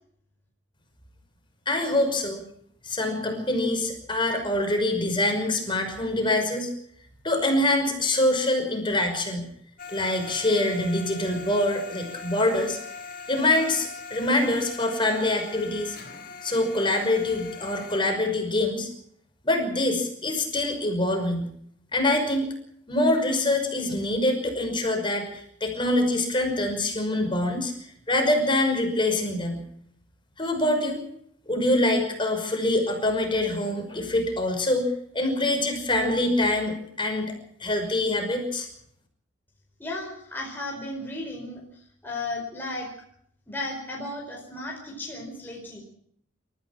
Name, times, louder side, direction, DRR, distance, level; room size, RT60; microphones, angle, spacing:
voice 1, 1.7-2.4 2.8-6.7 7.2-9.5 9.9-12.8 13.3-16.0 16.4-18.9 19.4-21.5 21.9-22.5 22.9-27.7 28.1-29.6 30.4-31.0 31.5-37.3 37.6-38.7, left 1 dB, 25° left, 4 dB, 5.8 m, -25 dB
sound 1, 9.8-18.0, left 5 dB, 50° left, 5.7 m, -41 dB
voice 2, 39.8-42.9 43.5-45.8, left 2 dB, 10° left, -2 dB, 4.9 m, -35 dB
29.5 x 14.5 x 6.1 m, 0.68 s
head